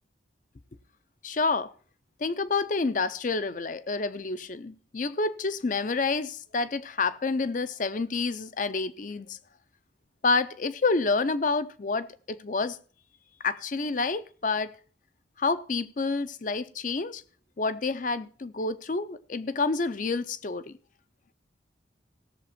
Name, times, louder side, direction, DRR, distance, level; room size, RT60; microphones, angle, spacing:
voice 1, 1.2-1.7 2.2-9.4 10.2-12.8 13.4-14.7 15.4-17.2 17.6-20.7, left 4 dB, 45° left, 0.5 m, -28 dB
17.0 x 7.0 x 4.2 m
head